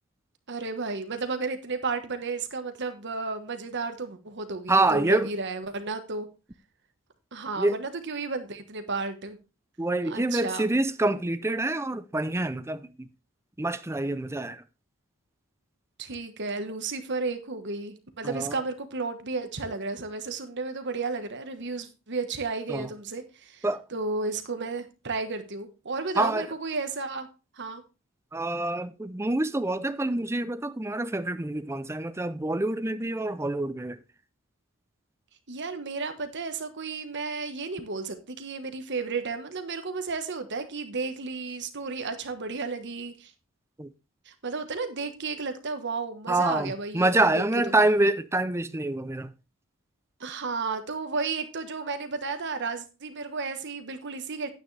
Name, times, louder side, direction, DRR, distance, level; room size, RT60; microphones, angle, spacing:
voice 1, 0.5-6.3 7.3-9.4 10.1-10.7 16.0-23.6 23.9-27.3 27.5-27.8 35.5-43.3 44.2-47.4 50.2-54.5, right 4 dB, 55° right, 1.3 m, -33 dB
voice 2, 4.7-5.3 7.6-7.8 9.8-13.1 13.6-14.6 18.2-18.6 22.7-22.9 23.6-23.8 26.2-26.5 28.3-34.0 43.8-43.9 46.3-49.3, right 2 dB, 10° right, 0.5 m, -26 dB
9.6 x 9.2 x 3.3 m
head